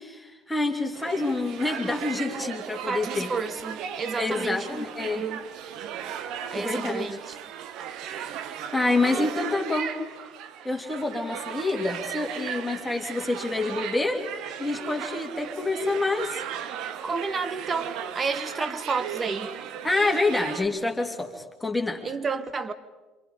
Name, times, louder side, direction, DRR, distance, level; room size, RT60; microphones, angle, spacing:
voice 1, 0.0-3.3 4.2-5.2 6.5-7.1 8.7-10.0 10.6-14.2 14.6-16.4 18.5-18.7 19.8-22.1, left 2 dB, 10° left, 2.6 m, -27 dB
sound 1, 0.9-20.6, right 9 dB, 50° right, 1.2 m, -36 dB
voice 2, 2.9-4.7 5.1-5.4 6.5-7.4 9.1-9.3 17.0-19.5 22.0-22.7, right 4 dB, 30° right, 1.3 m, -31 dB
27.5 x 27.0 x 5.1 m
figure-of-eight pair, 60°, 0 cm